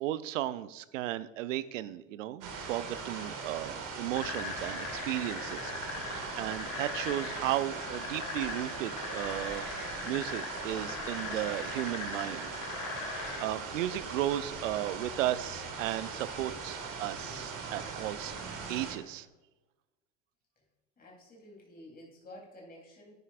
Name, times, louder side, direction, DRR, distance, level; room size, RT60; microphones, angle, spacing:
voice 1, 0.0-9.6 10.1-12.5 13.1-18.4 18.7-19.3, right 14 dB, 75° right, 16 dB, 0.6 m, -35 dB
sound 1, 2.4-18.9, right 5 dB, 50° right, 2.0 m, -40 dB
sound 2, 4.1-13.4, left 5 dB, 85° left, 1.8 m, -40 dB
voice 2, 21.0-23.1, left 1 dB, 25° left, -2 dB, 3.3 m, -51 dB
10.5 x 9.7 x 2.5 m, 1.1 s
hypercardioid pair, 70°, 38 cm